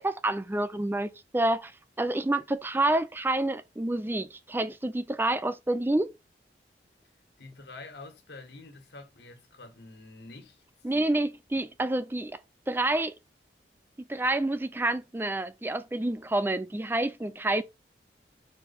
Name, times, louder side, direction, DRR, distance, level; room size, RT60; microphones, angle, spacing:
voice 1, 0.0-1.7 2.0-6.1 10.8-12.4 12.7-13.1 14.1-17.6, right 2 dB, 10° right, 0.4 m, -28 dB
voice 2, 7.4-10.6, left 3 dB, 70° left, 1.7 m, -47 dB
5.4 x 4.4 x 4.2 m
head